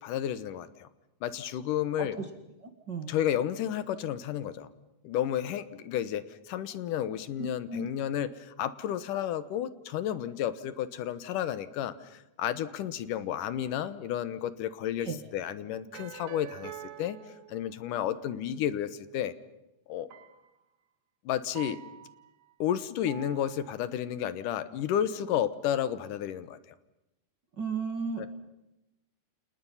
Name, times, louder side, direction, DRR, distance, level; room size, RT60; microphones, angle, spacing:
voice 1, 0.0-0.9 1.2-2.2 3.1-4.7 5.0-16.7 17.0-17.2 17.5-19.3 19.9-20.1 21.3-21.8 22.6-26.8 28.2-28.3, left 10 dB, 75° left, 14 dB, 2.6 m, -32 dB
voice 2, 7.4-7.9 15.0-15.2 27.6-28.3, right 4 dB, 40° right, 6 dB, 1.9 m, -34 dB
sound 1, 15.9-18.1 20.1-20.6 21.5-22.5 23.1-23.9, right 9 dB, 60° right, 2.9 m, -46 dB
29.5 x 29.0 x 5.6 m, 0.90 s
omnidirectional pair, 3.8 m